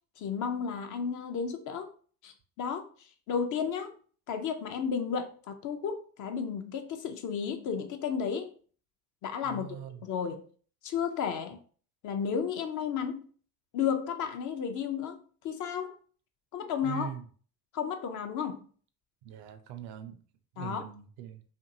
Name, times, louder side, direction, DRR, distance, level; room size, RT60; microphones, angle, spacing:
voice 1, 0.2-1.9 2.2-4.0 4.3-8.5 9.2-9.8 10.0-10.5 10.8-11.6 12.0-13.2 13.7-15.2 15.4-16.0 16.5-17.1 17.7-18.6 20.6-20.9, left 7 dB, 45° left, 6 dB, 0.5 m, -33 dB
voice 2, 9.5-10.0 16.8-17.2 19.2-20.2 20.6-21.4, right 8 dB, 60° right, 9 dB, 0.5 m, -41 dB
2.6 x 2.5 x 2.6 m, 0.44 s
hypercardioid pair, 65°, 44 cm